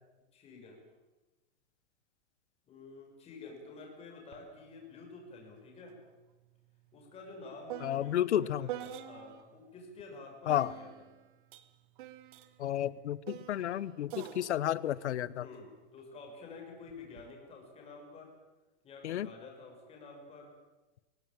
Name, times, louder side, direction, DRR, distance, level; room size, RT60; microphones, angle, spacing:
voice 1, 0.3-0.8 2.7-6.0 6.9-11.1 15.4-18.3 18.8-20.5, left 3 dB, 15° left, 1 dB, 6.3 m, -50 dB
sound 1, 4.3-4.5 4.8-9.6 10.5-16.0 16.9-17.3, right 12 dB, 45° right, 1.6 m, -47 dB
voice 2, 7.8-8.7 10.5-10.7 12.6-15.5 19.0-19.3, left 11 dB, 80° left, 19 dB, 1.2 m, -32 dB
23.0 x 18.0 x 9.0 m, 1.1 s
supercardioid pair, 165°, 34 cm